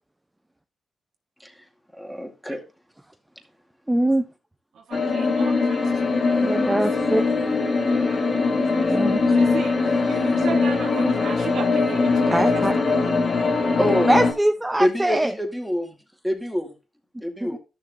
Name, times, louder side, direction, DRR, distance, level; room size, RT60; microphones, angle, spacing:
voice 1, 2.0-2.6 13.8-14.2 14.8-15.9 16.2-16.7 17.2-17.6, equal, 5° left, 2.2 m, -25 dB
voice 2, 3.9-4.2 6.4-7.2 8.9-9.2 12.3-12.7 14.1-15.3 17.4-17.6, right 1 dB, 15° right, 0.7 m, -22 dB
voice 3, 4.7-6.7 7.7-8.9 9.3-9.8 10.0-12.6, right 6 dB, 75° right, 1.4 m, -36 dB
sound 1, 4.9-14.3, left 4 dB, 50° left, 1.8 m, -21 dB
sound 2, 5.8-14.1, left 1 dB, 30° left, 2.2 m, -37 dB
12.0 x 6.7 x 2.7 m
supercardioid pair, 55°, 0 cm